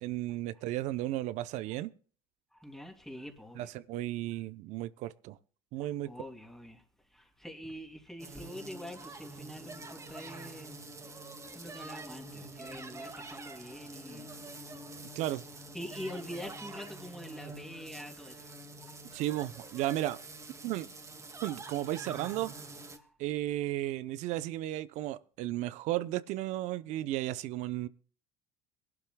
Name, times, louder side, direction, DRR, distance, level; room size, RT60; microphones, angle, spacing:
voice 1, 0.0-1.9 3.6-5.4 5.7-6.1 15.1-15.4 19.1-20.2 20.6-20.9 21.4-22.5 23.2-27.9, right 14 dB, 65° right, 0.7 m, -34 dB
voice 2, 2.5-3.7 5.8-6.8 7.1-10.8 11.5-15.2 15.7-19.0 22.9-23.1, equal, 5° left, 3.0 m, -45 dB
sound 1, 8.2-23.0, right 2 dB, 25° right, 2.0 m, -46 dB
22.5 x 12.0 x 2.3 m
hypercardioid pair, 80°, 13 cm